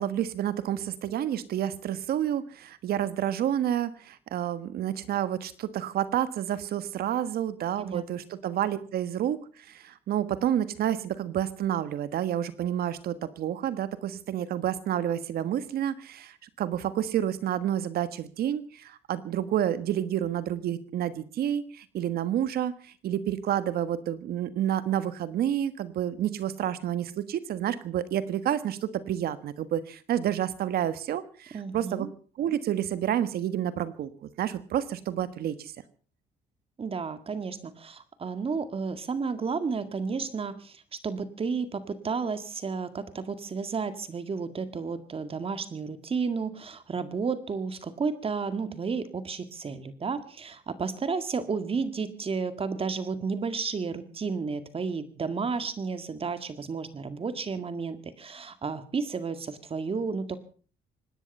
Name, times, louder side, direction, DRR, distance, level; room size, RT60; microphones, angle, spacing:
voice 1, 0.0-32.1 32.4-35.7, right 10 dB, 70° right, 14 dB, 1.5 m, -29 dB
voice 2, 31.5-32.1 36.8-60.4, right 5 dB, 35° right, 11 dB, 2.0 m, -32 dB
25.0 x 10.0 x 5.5 m, 0.42 s
cardioid pair, 95°, 16 cm